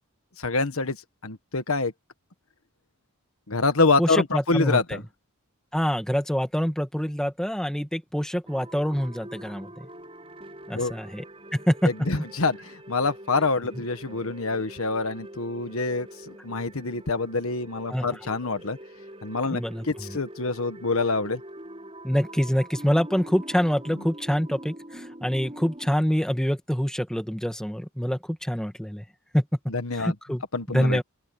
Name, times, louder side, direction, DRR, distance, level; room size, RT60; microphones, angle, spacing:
voice 1, 0.4-1.0 1.2-1.9 3.5-5.0 10.7-10.9 11.8-18.8 19.2-19.6 19.9-21.4 29.7-30.1 30.5-31.0, left 3 dB, 65° left, 1.5 m, -26 dB
voice 2, 4.0-5.0 5.7-9.9 10.7-11.2 11.5-11.9 17.9-18.1 19.5-20.2 22.0-29.1 29.3-29.4 30.0-30.4 30.7-31.0, equal, 5° left, 1.9 m, -26 dB
sound 1, 8.5-25.9, right 1 dB, 25° right, 6.8 m, -44 dB
open air
head